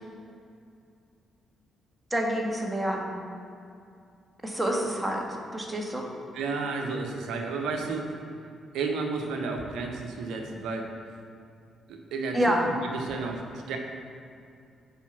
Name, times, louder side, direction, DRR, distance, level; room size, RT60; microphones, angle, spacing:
voice 1, 2.1-3.1 4.4-5.2 5.5-6.0 12.3-12.6, equal, 15° right, 0 dB, 1.7 m, -27 dB
voice 2, 6.3-8.2 8.7-10.9 11.9-13.8, right 4 dB, 65° right, 2 dB, 1.0 m, -32 dB
7.3 x 5.0 x 5.9 m, 2.4 s
hypercardioid pair, 40°, 0 cm